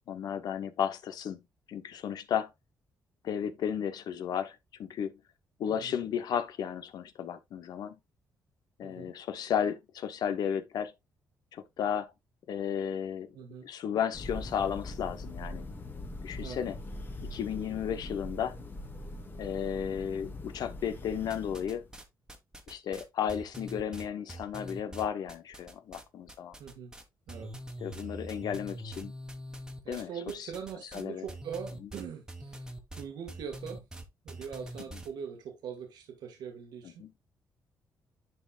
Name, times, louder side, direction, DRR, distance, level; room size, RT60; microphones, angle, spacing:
voice 1, 0.1-1.4 1.7-2.5 3.2-5.2 5.6-8.0 8.8-10.9 11.5-12.1 12.5-13.3 13.6-15.6 16.2-16.8 17.3-18.6 19.4-21.8 22.7-26.5 27.8-29.1 29.9-30.5 30.9-31.2 34.9-35.0 37.0-37.1, left 8 dB, 75° left, 0.9 m, -34 dB
voice 2, 8.8-9.1 13.3-13.7 16.3-16.6 26.6-26.9 27.3-27.5 27.9-28.0 29.8-33.8 34.2-37.1, right 7 dB, 85° right, 1.7 m, -42 dB
Thunder, 14.1-22.0, left 1 dB, 30° left, 1.3 m, -42 dB
sound 1, 21.3-22.0 22.3-26.0 26.3-27.0 27.3-35.1, right 1 dB, 10° right, 1.4 m, -44 dB
10.5 x 4.4 x 2.4 m
cardioid pair, 115°, 7 cm